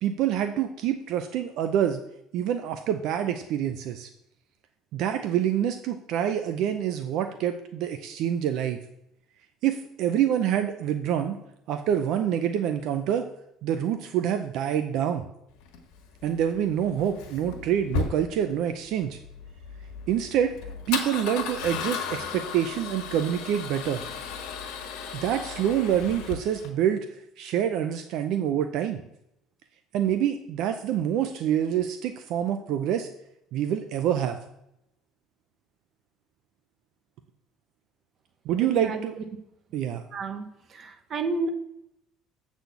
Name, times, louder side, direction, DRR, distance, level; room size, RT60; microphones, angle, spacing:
voice 1, 0.0-2.0 2.3-4.1 4.9-8.8 9.6-11.4 11.7-13.3 13.6-15.3 16.2-19.2 20.1-20.6 20.9-24.0 25.1-27.1 27.4-29.0 29.9-33.1 33.5-34.4 38.5-39.2 39.7-40.0, right 10 dB, 60° right, 8 dB, 0.5 m, -26 dB
Male speech man speaking / Car / Engine starting, 15.6-26.7, left 6 dB, 85° left, 1.5 m, -35 dB
voice 2, 38.6-39.0 40.1-40.5 40.7-41.5, right 3 dB, 35° right, 6 dB, 0.9 m, -31 dB
8.1 x 4.1 x 6.9 m, 0.80 s
cardioid pair, 150°, 0 cm